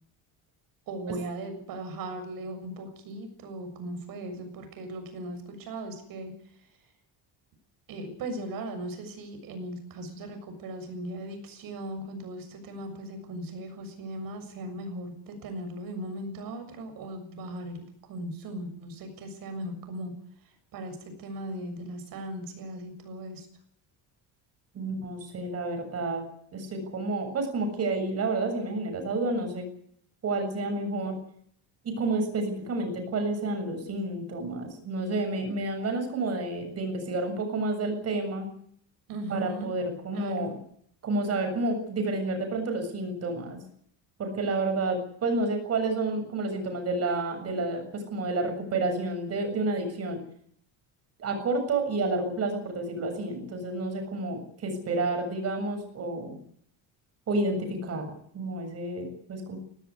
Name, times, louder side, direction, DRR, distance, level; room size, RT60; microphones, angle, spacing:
voice 1, 0.9-6.3 6.6-6.8 7.9-20.1 20.4-23.5 39.1-39.7 40.1-40.5, right 1 dB, 55° right, 8 dB, 7.0 m, -38 dB
voice 2, 24.7-26.2 26.5-29.7 30.2-31.2 31.8-38.5 39.3-40.5 41.0-43.6 44.2-50.2 51.2-56.4 57.3-59.6, right 2 dB, 35° right, 6 dB, 7.1 m, -30 dB
18.5 x 17.5 x 9.7 m, 0.67 s
cardioid pair, 175°, 41 cm